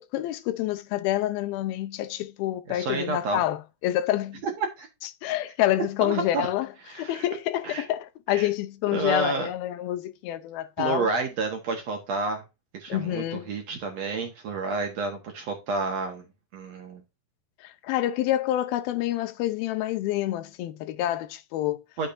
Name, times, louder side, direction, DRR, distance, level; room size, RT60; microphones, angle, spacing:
voice 1, 0.0-4.4 5.2-6.7 7.0-11.1 12.9-13.5 17.6-21.8, left 14 dB, 85° left, 2.5 m, -28 dB
voice 2, 2.7-3.4 4.4-4.5 4.8-4.9 6.0-6.5 6.9-7.2 7.6-7.8 8.3-8.5 8.9-9.5 10.8-12.4 12.7-16.3 16.5-17.0 22.0-22.1, right 3 dB, 60° right, 2.0 m, -30 dB
11.0 x 6.6 x 2.6 m
omnidirectional pair, 4.4 m